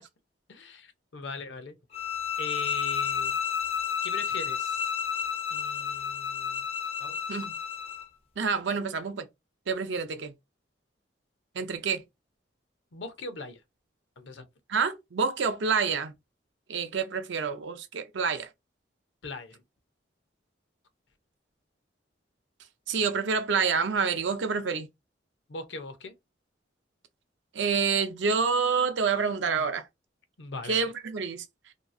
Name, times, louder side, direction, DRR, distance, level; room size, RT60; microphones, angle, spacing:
voice 1, 0.5-1.8 2.4-3.4 4.0-4.8 5.5-6.6 7.0-7.2 12.9-13.6 14.2-14.4 19.2-19.6 25.5-26.1 30.4-30.9, left 3 dB, 70° left, 0.6 m, -40 dB
sound 1, 1.9-8.1, left 7 dB, 30° left, 0.4 m, -31 dB
voice 2, 8.4-9.3 9.7-10.3 11.5-12.0 14.7-16.1 16.7-18.5 22.9-24.9 27.5-29.9 30.6-31.4, right 5 dB, 75° right, 0.5 m, -28 dB
2.8 x 2.3 x 2.5 m
head